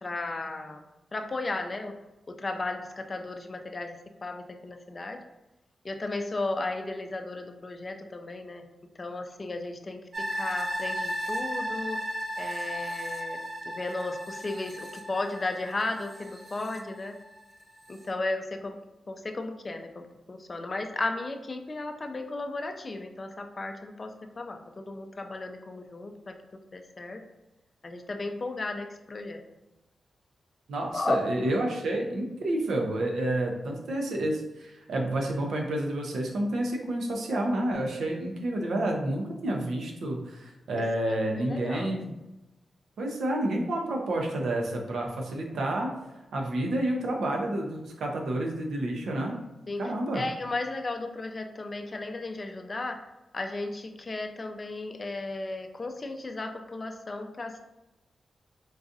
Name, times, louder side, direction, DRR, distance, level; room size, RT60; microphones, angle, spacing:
voice 1, 0.0-0.8 1.1-1.9 2.3-5.2 5.8-8.7 9.0-10.0 10.3-12.0 12.4-13.4 13.7-17.2 17.9-18.8 19.1-26.3 26.7-27.2 27.8-29.4 30.9-31.2 41.4-41.9 49.7-53.1 53.3-57.6, left 2 dB, 35° left, 5 dB, 0.3 m, -35 dB
sound 1, 10.1-17.4 17.8-17.9, equal, 40° right, 0.6 m, -35 dB
voice 2, 30.7-42.2 43.0-45.9 46.3-49.4 49.8-50.2, right 1 dB, 85° right, 1 dB, 0.6 m, -29 dB
3.9 x 2.4 x 2.6 m, 0.99 s
cardioid pair, 95°, 0 cm